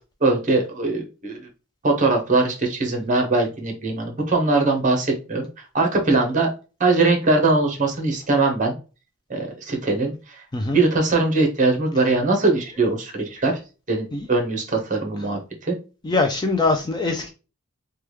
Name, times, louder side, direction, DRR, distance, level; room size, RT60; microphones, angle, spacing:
voice 1, 0.2-1.4 1.8-5.5 5.7-6.5 6.8-8.7 9.3-10.4 10.7-13.6 13.9-15.8, right 3 dB, 35° right, 0.9 m, -21 dB
voice 2, 16.0-17.3, left 3 dB, 20° left, 0.3 m, -22 dB
3.3 x 2.2 x 3.1 m
head